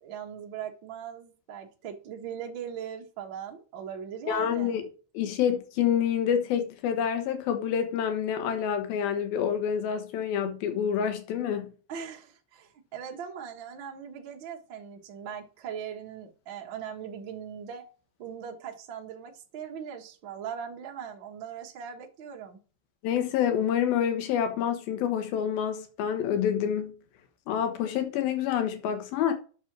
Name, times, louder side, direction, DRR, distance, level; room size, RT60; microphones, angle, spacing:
voice 1, 0.0-4.8 11.9-17.8 18.2-22.6, right 8 dB, 60° right, 1.2 m, -40 dB
voice 2, 4.3-4.8 5.1-11.7 23.0-26.9 27.5-29.3, left 9 dB, 75° left, 3.0 m, -27 dB
8.2 x 6.3 x 6.0 m
omnidirectional pair, 4.4 m